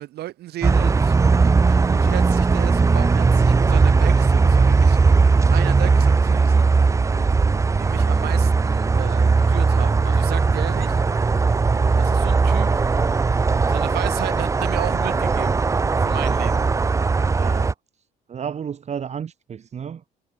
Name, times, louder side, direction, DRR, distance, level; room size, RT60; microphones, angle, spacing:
voice 1, 0.0-5.0 5.5-6.7 7.8-11.0 12.0-12.7 13.7-15.6 16.0-16.6, right 14 dB, 75° right, 5.4 m, -34 dB
sound 1, 0.6-17.7, right 4 dB, 20° right, 0.6 m, -18 dB
voice 2, 17.4-17.7 18.3-20.1, right 7 dB, 40° right, 2.4 m, -32 dB
cardioid pair, 110°, 17 cm